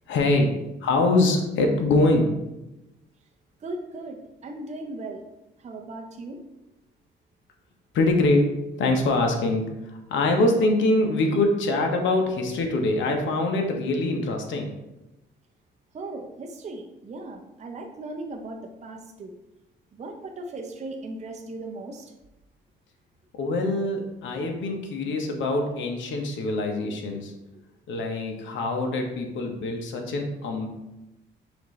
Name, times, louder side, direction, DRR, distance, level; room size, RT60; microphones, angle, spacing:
voice 1, 0.1-2.3 7.9-14.7 23.3-27.3 27.9-30.7, left 2 dB, 70° left, 3 dB, 0.8 m, -24 dB
voice 2, 3.6-5.2 5.6-6.4 15.9-19.3 19.9-22.1, right 2 dB, 35° right, 2 dB, 0.6 m, -37 dB
5.9 x 2.6 x 3.1 m, 0.95 s
cardioid pair, 90°, 20 cm